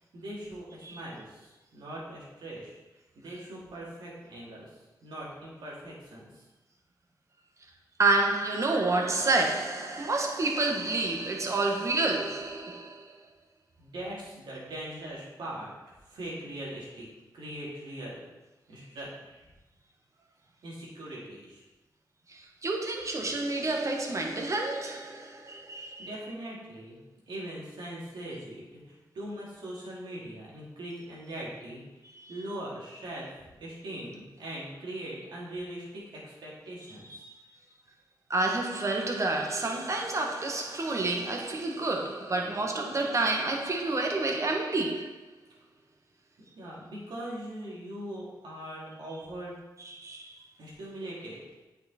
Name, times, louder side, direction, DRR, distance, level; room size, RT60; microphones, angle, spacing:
voice 1, 0.1-2.8 3.2-6.3 13.8-17.1 17.3-18.2 18.7-19.5 20.6-21.6 26.0-27.0 27.3-31.8 32.3-33.3 33.6-37.2 46.5-49.6 50.6-51.4, right 1 dB, 85° right, 2.9 m, -41 dB
voice 2, 8.0-13.1 22.3-26.1 32.2-32.3 37.1-37.2 38.3-45.2 50.0-50.3, right 2 dB, 40° right, 1.5 m, -29 dB
8.9 x 5.8 x 4.4 m
cardioid pair, 80°, 8 cm